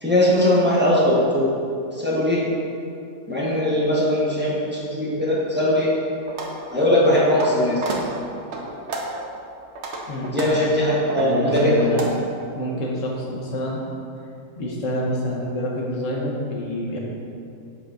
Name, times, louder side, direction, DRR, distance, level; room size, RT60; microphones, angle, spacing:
voice 1, 0.0-1.5 1.9-2.4 3.3-5.9 6.7-7.8 10.2-11.9, left 1 dB, 10° right, -7 dB, 0.9 m, -20 dB
sound 1, 6.3-6.5 7.0-7.5 7.8-8.0 8.5-9.2 9.6-12.0, right 3 dB, 55° right, 0.9 m, -31 dB
voice 2, 11.0-12.2 12.5-13.8 14.6-17.0, left 1 dB, 65° left, -2 dB, 1.3 m, -27 dB
7.4 x 5.8 x 2.5 m, 2.6 s
omnidirectional pair, 1.5 m